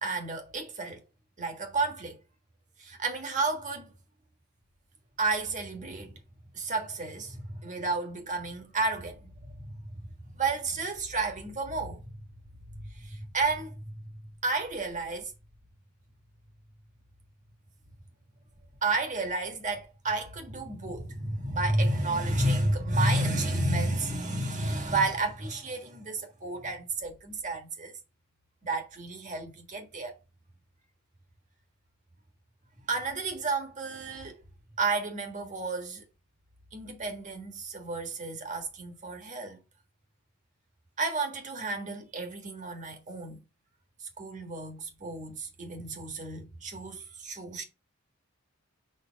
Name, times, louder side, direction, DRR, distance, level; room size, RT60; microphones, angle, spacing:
voice 1, 0.0-1.0 1.4-2.2 2.8-3.9 5.2-6.2 6.5-12.0 12.9-13.9 14.4-15.3 18.8-27.9 28.6-30.2 32.9-34.4 34.8-36.0 36.7-39.6 41.0-43.4 44.0-47.6, right 2 dB, 35° right, 1.5 m, -31 dB
6.7 x 3.2 x 4.6 m
head